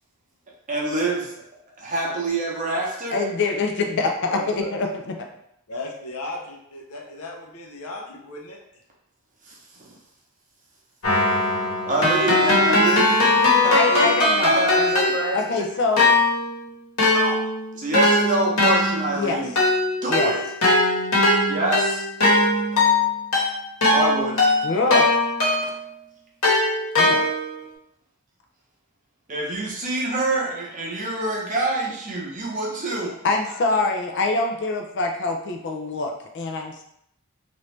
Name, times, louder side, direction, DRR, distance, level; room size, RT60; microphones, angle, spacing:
voice 1, 0.7-1.3 1.8-3.2 9.4-10.0 11.8-14.2 14.5-15.7 17.1-17.4 17.7-19.5 20.0-20.4 21.5-22.1 22.7-22.8 23.9-24.4 27.0-27.3 29.3-33.1, right 2 dB, 35° right, -2 dB, 0.7 m, -26 dB
voice 2, 3.1-5.3 13.7-14.9 15.3-16.1 19.2-19.4 20.1-20.3 24.6-25.1 27.0-27.2 33.2-36.8, left 3 dB, 50° left, 3 dB, 0.4 m, -24 dB
voice 3, 4.2-4.7 5.7-8.6, left 2 dB, 85° left, 0 dB, 0.7 m, -36 dB
Keyboard (musical), 11.0-15.6 16.0-25.9 26.4-27.6, left 2 dB, 70° left, 1.2 m, -20 dB
3.1 x 2.6 x 3.2 m, 0.75 s
head